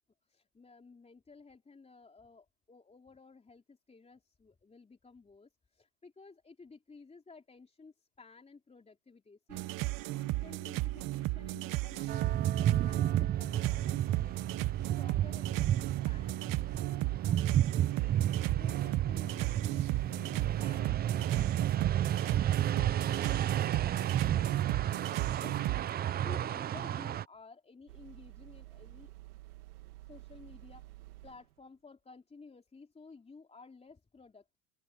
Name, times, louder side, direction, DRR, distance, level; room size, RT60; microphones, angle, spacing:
voice 1, 0.2-14.4 14.8-18.2 18.6-24.9 25.1-25.6 26.2-29.1 30.0-30.9 31.2-34.6, left 4 dB, 15° left, 3.8 m, -55 dB
sound 1, 9.5-25.9, right 18 dB, 45° right, 1.2 m, -35 dB
sound 2, 12.1-27.2, right 11 dB, 20° right, 0.5 m, -32 dB
sound 3, 27.9-31.6, right 19 dB, 85° right, 2.3 m, -51 dB
open air
supercardioid pair, 120°, 44 cm